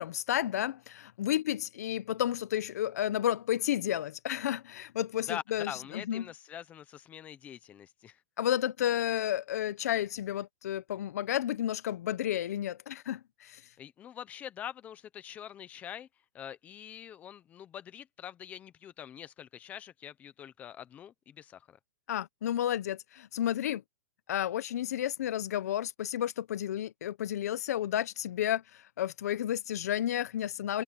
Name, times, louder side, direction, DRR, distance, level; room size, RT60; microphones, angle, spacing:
voice 1, 0.0-6.3 8.4-13.6 22.1-23.8 24.3-30.8, left 11 dB, 60° left, 1.1 m, -32 dB
voice 2, 5.3-8.2 13.8-16.1 16.3-21.8, left 10 dB, 15° left, 0.9 m, -44 dB
hypercardioid pair, 160°, 10 cm